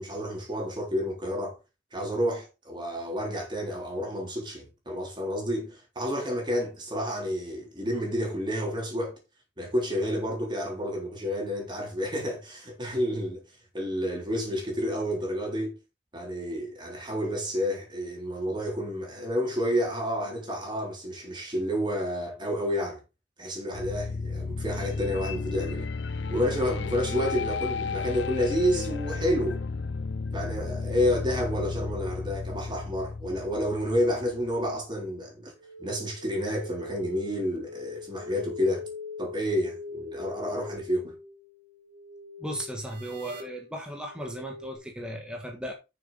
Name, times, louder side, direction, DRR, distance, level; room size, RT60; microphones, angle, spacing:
voice 1, 0.0-1.6 1.9-9.2 9.6-13.4 13.7-15.8 16.1-23.0 23.4-25.9 26.3-29.6 30.3-35.5 35.8-38.8 39.2-41.1, equal, 25° right, 3.7 m, -30 dB
sound 1, 23.7-34.6, left 4 dB, 70° left, 0.5 m, -33 dB
sound 2, 35.6-44.8, left 3 dB, 50° right, 3.8 m, -42 dB
voice 2, 42.4-45.7, right 1 dB, 5° right, 1.5 m, -36 dB
9.4 x 6.8 x 4.2 m
head